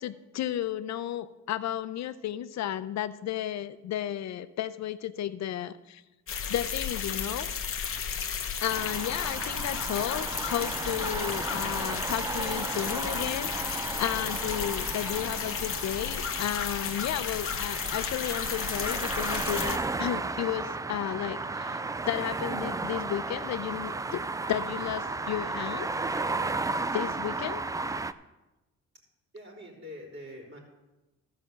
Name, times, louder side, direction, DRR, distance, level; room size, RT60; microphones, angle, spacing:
voice 1, 0.0-6.0 6.5-7.5 8.6-21.8 22.1-24.2 24.5-25.9 26.9-27.6, left 11 dB, 65° left, 14 dB, 0.7 m, -33 dB
sound 1, 6.3-19.8, left 7 dB, 45° left, 1.1 m, -33 dB
sound 2, 8.7-28.1, right 3 dB, 10° right, 0.3 m, -34 dB
voice 2, 9.1-9.4 29.3-30.6, left 1 dB, 40° right, -2 dB, 3.7 m, -45 dB
13.5 x 5.2 x 7.1 m, 1.0 s
cardioid pair, 90°, 30 cm